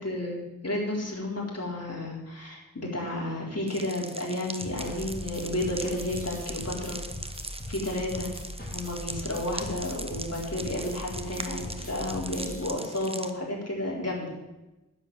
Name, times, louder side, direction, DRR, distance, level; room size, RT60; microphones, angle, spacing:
voice 1, 0.0-7.0 7.7-8.3 8.7-14.3, left 1 dB, 50° left, -3 dB, 4.2 m, -32 dB
sound 1, 3.7-13.3, right 1 dB, 20° right, 1.0 m, -41 dB
sound 2, 4.6-12.6, left 1 dB, 30° left, 4.5 m, -40 dB
10.5 x 7.4 x 8.9 m, 1.0 s
wide cardioid pair, 45°, 31 cm